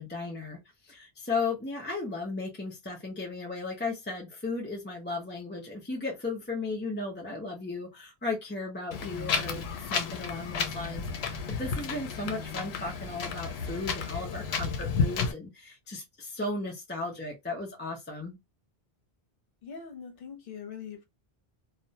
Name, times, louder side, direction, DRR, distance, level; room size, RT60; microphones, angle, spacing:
voice 1, 0.0-18.4, left 3 dB, 15° left, 0.4 m, -35 dB
Wind, 8.9-15.3, left 5 dB, 90° left, 0.8 m, -32 dB
voice 2, 19.6-21.0, left 6 dB, 65° left, 1.0 m, -42 dB
2.3 x 2.1 x 2.7 m
omnidirectional pair, 1.0 m